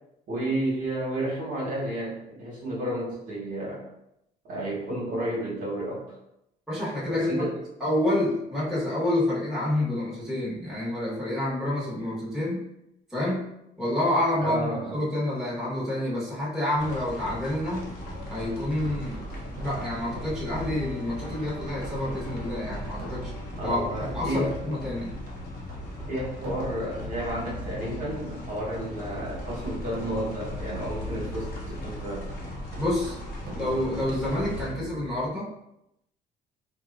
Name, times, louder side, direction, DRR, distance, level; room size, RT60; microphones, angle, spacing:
voice 1, 0.3-3.8 4.4-6.0 7.0-7.6 14.4-15.0 23.6-24.6 26.1-31.5 31.8-32.3, right 1 dB, 55° right, -5 dB, 1.0 m, -31 dB
voice 2, 6.7-7.5 7.8-12.6 13.1-13.5 13.8-17.9 18.3-19.2 19.6-23.3 23.6-25.1 32.8-33.2 33.5-35.5, left 1 dB, ahead, -8 dB, 1.1 m, -28 dB
sound 1, 16.8-34.7, left 1 dB, 65° left, 0.7 m, -39 dB
sound 2, 18.0-35.2, right 1 dB, 70° right, 0.7 m, -41 dB
sound 3, 19.6-23.8, left 4 dB, 25° left, 1.1 m, -48 dB
2.7 x 2.2 x 2.4 m, 0.82 s
cardioid pair, 110°, 17 cm